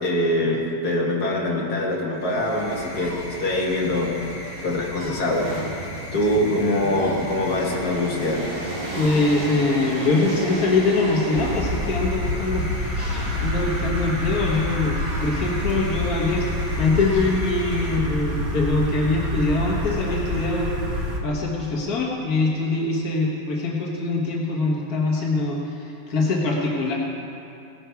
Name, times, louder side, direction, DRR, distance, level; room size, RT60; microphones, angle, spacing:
voice 1, 0.0-4.2 4.6-5.5 6.1-8.5, left 1 dB, 35° left, -3 dB, 1.6 m, -23 dB
sound 1, 2.1-18.6, left 1 dB, 10° left, 1.6 m, -37 dB
sound 2, 4.5-12.1 13.0-13.8 17.0-17.8 18.2-20.6, right 1 dB, 45° right, 3.6 m, -35 dB
voice 2, 9.0-16.5 16.8-20.7 21.2-26.9, left 3 dB, 70° left, -2 dB, 0.8 m, -23 dB
sound 3, 11.4-21.2, left 1 dB, 85° right, 0.7 m, -27 dB
18.0 x 12.0 x 4.6 m, 2.6 s
omnidirectional pair, 4.0 m